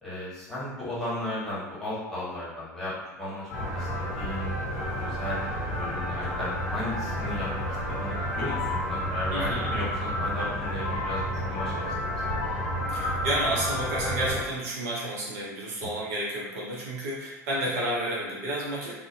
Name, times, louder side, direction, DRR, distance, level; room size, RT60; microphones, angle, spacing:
voice 1, 0.0-7.6 8.0-11.9 12.2-12.3 15.8-16.0, left 1 dB, 5° left, -10 dB, 1.2 m, -35 dB
sound 1, 3.5-14.4, equal, 45° left, 0.7 m, -30 dB
voice 2, 9.3-9.7 12.9-18.9, right 1 dB, 60° right, -5 dB, 0.6 m, -31 dB
2.4 x 2.1 x 2.6 m, 1.1 s
figure-of-eight pair, 70°, 9 cm